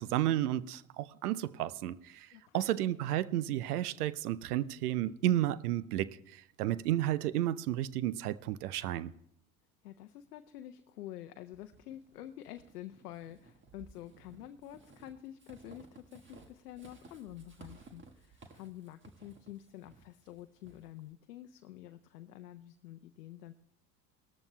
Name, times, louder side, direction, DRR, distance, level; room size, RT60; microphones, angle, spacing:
voice 1, 0.0-2.3 2.5-9.1, right 13 dB, 80° right, 0.6 m, -32 dB
voice 2, 9.8-23.5, left 13 dB, 85° left, 0.6 m, -48 dB
Walk footsteps / Squeak, 11.5-21.1, right 3 dB, 25° right, 1.4 m, -58 dB
18.5 x 13.5 x 2.2 m
hypercardioid pair, 70°, 45 cm